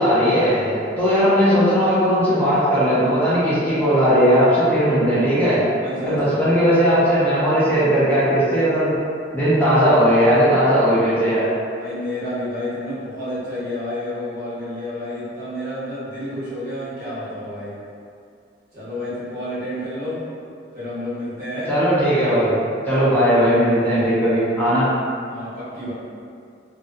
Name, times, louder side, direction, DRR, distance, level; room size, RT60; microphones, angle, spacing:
voice 1, 0.0-5.6 6.0-9.0 9.3-11.5 21.7-22.5 22.9-24.9, equal, 10° left, -11 dB, 0.5 m, -17 dB
voice 2, 5.8-6.6 11.7-17.8 18.7-20.2 20.7-21.7 25.3-25.9, left 1 dB, 55° right, -12 dB, 1.2 m, -30 dB
2.5 x 2.1 x 2.5 m, 2.4 s
head